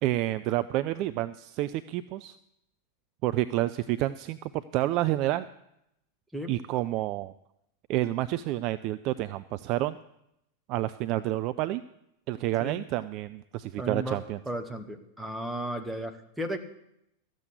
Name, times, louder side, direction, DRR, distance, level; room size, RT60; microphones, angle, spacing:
voice 1, 0.0-2.4 3.2-5.5 6.5-7.3 7.9-10.0 10.7-11.8 12.3-14.4, right 15 dB, 40° right, 13 dB, 0.4 m, -29 dB
voice 2, 13.8-14.2 14.4-16.6, right 1 dB, 5° right, 4 dB, 1.4 m, -34 dB
13.5 x 7.6 x 8.1 m, 0.81 s
figure-of-eight pair, 90°, 0 cm